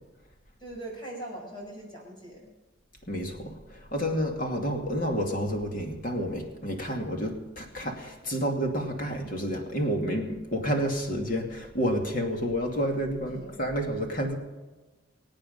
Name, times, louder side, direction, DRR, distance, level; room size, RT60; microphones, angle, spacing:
voice 1, 0.6-2.5 13.3-13.6, right 1 dB, 25° left, -2 dB, 5.4 m, -41 dB
voice 2, 3.1-14.3, equal, 45° left, 3 dB, 2.4 m, -30 dB
24.5 x 8.9 x 5.4 m, 1.2 s
head